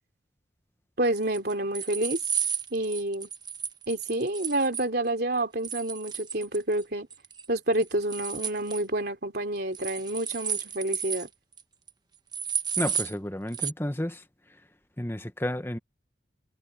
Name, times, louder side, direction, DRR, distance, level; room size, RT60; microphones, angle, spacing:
voice 1, 1.0-2.2 2.7-3.3 3.9-7.1 7.5-11.3, right 1 dB, 55° right, 3.7 m, -28 dB
sound 1, 1.2-4.9 5.6-6.8 7.1-7.5 7.7-8.8 9.7-11.3 11.6-11.7 11.9-12.0 12.3-13.1 13.5-13.7, right 7 dB, 20° right, 1.0 m, -32 dB
voice 2, 12.8-14.2 15.0-15.8, left 1 dB, 10° left, 1.0 m, -31 dB
head